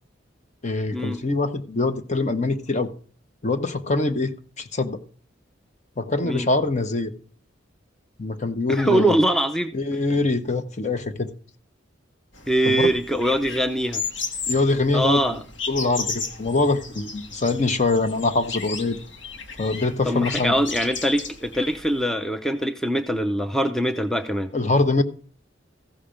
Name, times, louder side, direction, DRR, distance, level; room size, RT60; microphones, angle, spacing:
voice 1, 0.6-2.9 3.4-5.0 6.0-7.1 8.2-9.2 9.7-11.3 12.7-12.9 14.5-15.2 15.7-19.0 19.6-20.6 24.5-25.0, left 3 dB, 40° left, 0.8 m, -23 dB
voice 2, 8.7-9.7 12.5-14.0 14.9-15.4 20.0-24.5, right 1 dB, ahead, 0.5 m, -23 dB
sound 1, 12.3-22.0, left 5 dB, 75° left, 1.7 m, -35 dB
15.0 x 5.7 x 5.0 m
head